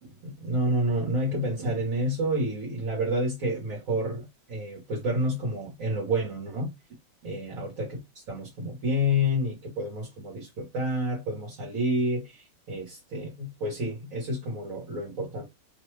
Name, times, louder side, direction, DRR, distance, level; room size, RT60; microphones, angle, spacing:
voice 1, 0.0-6.7 7.2-8.0 8.3-15.4, equal, 55° right, 1.3 m, -29 dB
3.2 x 2.2 x 3.1 m
omnidirectional pair, 2.0 m